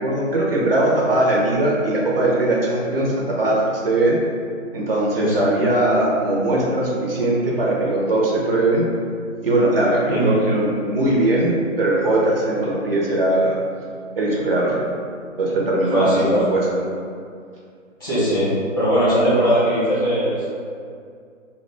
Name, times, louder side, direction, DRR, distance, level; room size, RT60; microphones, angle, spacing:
voice 1, 0.0-4.2 4.7-8.9 9.4-13.6 14.2-14.8 15.4-16.6, right 1 dB, 50° right, -4 dB, 0.5 m, -20 dB
voice 2, 5.1-5.5 10.1-10.3 15.9-16.4 18.0-20.5, equal, 15° left, -11 dB, 0.6 m, -20 dB
2.2 x 2.0 x 3.2 m, 2.3 s
figure-of-eight pair, 145°, 38 cm